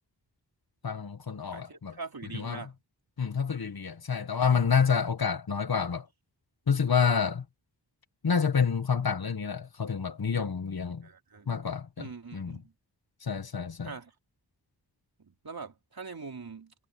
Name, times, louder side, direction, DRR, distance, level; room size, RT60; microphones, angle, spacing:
voice 1, 0.8-2.0 2.3-2.6 3.2-6.0 6.7-7.4 8.2-11.1 11.5-12.6 13.2-13.9, left 6 dB, 60° left, 1.5 m, -28 dB
voice 2, 1.5-2.7 11.0-11.5 12.0-12.7 13.8-14.1 15.2-16.7, right 4 dB, 55° right, 3.5 m, -43 dB
wide cardioid pair, 105°, 43 cm